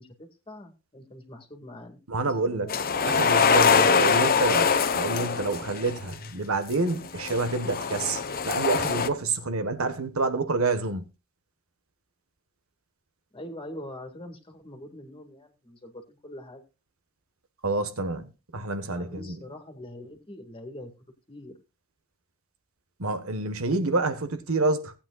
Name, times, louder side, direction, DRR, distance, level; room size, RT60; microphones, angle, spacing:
voice 1, 0.0-3.0 13.3-16.6 18.8-20.9 21.3-21.5, left 1 dB, 25° left, 2.1 m, -44 dB
voice 2, 2.1-2.7 3.1-11.0 17.6-19.4 23.0-24.9, right 3 dB, 80° right, 1.4 m, -28 dB
sound 1, 2.7-6.0 6.9-9.1, left 5 dB, 45° left, 0.8 m, -23 dB
18.0 x 8.8 x 2.4 m
head